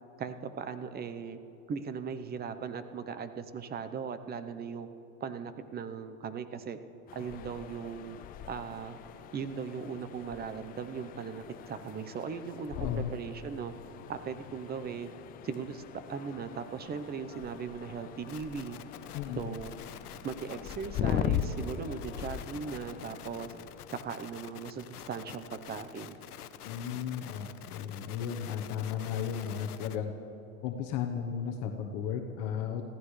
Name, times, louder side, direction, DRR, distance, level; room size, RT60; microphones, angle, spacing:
voice 1, 0.2-1.4 1.7-4.9 5.2-6.8 7.1-8.2 8.5-9.0 9.3-13.7 14.1-15.1 15.4-15.8 16.1-18.8 19.3-19.7 20.2-23.5 24.0-26.2, right 6 dB, 20° right, 10 dB, 0.8 m, -38 dB
sound 1, 7.1-23.9, left 9 dB, 20° left, 0.3 m, -40 dB
voice 2, 12.7-13.1 19.1-19.5 26.6-30.1 30.6-32.8, left 8 dB, 45° left, 3 dB, 1.2 m, -35 dB
sound 2, 18.3-30.0, left 10 dB, 90° left, 0.9 m, -48 dB
26.0 x 15.5 x 3.3 m, 3.0 s
hypercardioid pair, 115°, 45 cm